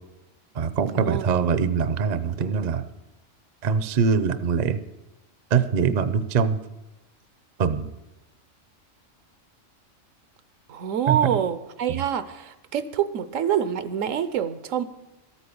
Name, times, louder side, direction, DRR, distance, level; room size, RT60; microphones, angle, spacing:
voice 1, 0.5-2.8 3.6-4.8 5.5-6.6 7.6-7.9 11.1-11.2, right 6 dB, 45° right, 0.6 m, -23 dB
voice 2, 10.7-14.8, right 9 dB, 80° right, 1.1 m, -26 dB
13.5 x 8.6 x 6.9 m
omnidirectional pair, 1.4 m